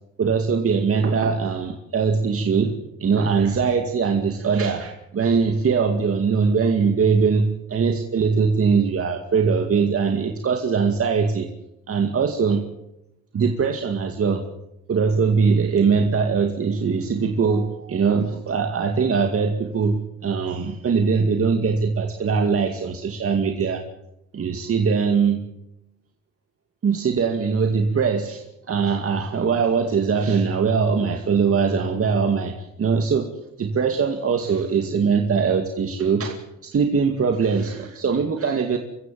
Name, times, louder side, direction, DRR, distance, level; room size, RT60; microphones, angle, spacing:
voice 1, 0.2-2.7 3.0-11.5 11.9-12.6 13.3-14.4 14.9-23.8 24.3-25.4 26.8-33.3 33.6-38.8, right 5 dB, 50° right, 4 dB, 2.3 m, -21 dB
26.0 x 15.0 x 7.6 m, 0.85 s
cardioid pair, 90°, 30 cm